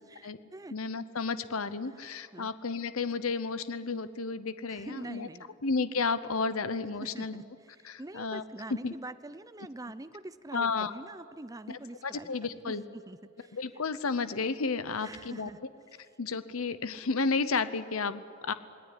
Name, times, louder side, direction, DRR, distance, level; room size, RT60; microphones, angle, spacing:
voice 1, 0.1-0.7 2.3-2.5 4.7-5.6 7.0-13.6 15.0-15.6, right 2 dB, 15° right, 13 dB, 0.6 m, -45 dB
voice 2, 0.7-5.3 5.6-7.4 7.8-8.4 8.8-8.9 10.5-10.9 11.7-12.8 13.5-15.5 16.2-18.5, left 4 dB, 80° left, 13 dB, 0.9 m, -32 dB
27.5 x 18.5 x 10.0 m, 2.5 s
head